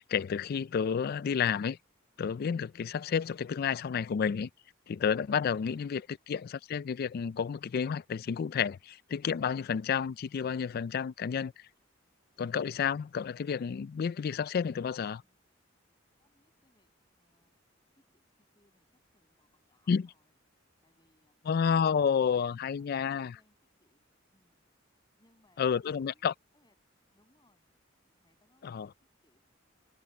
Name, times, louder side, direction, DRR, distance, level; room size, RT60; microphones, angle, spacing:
voice 1, 0.0-1.8 2.2-4.5 4.9-11.5 12.4-15.2 19.9-20.1 21.5-23.3 25.6-26.3 28.6-28.9, left 7 dB, 50° left, 0.3 m, -30 dB
voice 2, 5.6-6.3 15.0-15.4 16.2-17.5 17.9-20.3 20.8-21.6 22.8-24.6 25.2-26.7 27.1-27.7 28.2-29.4, left 1 dB, 20° left, 6.8 m, -72 dB
head